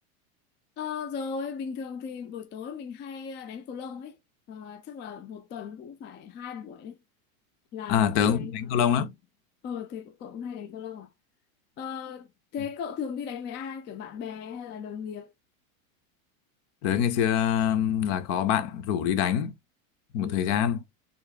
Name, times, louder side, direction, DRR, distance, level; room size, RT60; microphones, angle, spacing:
voice 1, 0.8-4.2 4.5-7.0 7.7-9.1 9.6-11.1 11.8-15.3 20.2-20.7, left 7 dB, 25° left, 0.5 m, -37 dB
voice 2, 7.9-9.1 16.8-19.5 20.1-20.8, left 9 dB, 55° left, 0.9 m, -25 dB
4.4 x 3.5 x 2.3 m
hypercardioid pair, 115°, 42 cm